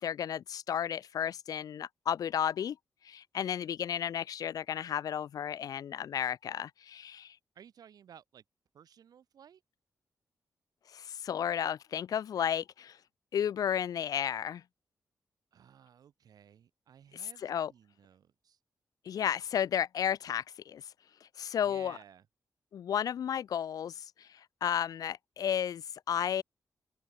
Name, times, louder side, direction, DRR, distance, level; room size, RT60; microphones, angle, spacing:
voice 1, 0.0-2.8 3.0-7.4 10.9-13.0 13.3-14.6 17.1-17.7 19.1-20.8 21.2-22.0 22.7-26.4, left 9 dB, 75° left, 0.4 m, -33 dB
voice 2, 7.5-8.4 8.7-9.6 15.5-18.6 21.6-22.3, right 8 dB, 90° right, 6.8 m, -56 dB
open air
wide cardioid pair, 105°, 6 cm